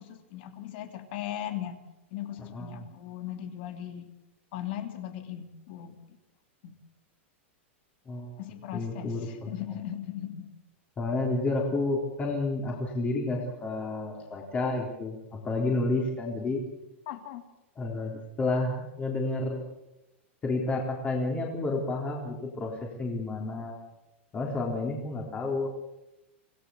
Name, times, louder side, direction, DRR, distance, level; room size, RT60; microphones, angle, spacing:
voice 1, 0.0-1.8 2.1-4.1 4.5-6.0 6.6-6.7 8.4-10.5 17.1-17.4, left 11 dB, 50° left, 7 dB, 3.0 m, -38 dB
voice 2, 2.5-2.9 8.1-8.3 8.7-9.5 11.0-16.6 17.8-19.6 20.4-23.8 24.3-25.7, left 2 dB, 20° left, -1 dB, 3.7 m, -30 dB
26.0 x 18.0 x 7.1 m, 0.94 s
supercardioid pair, 150°, 7 cm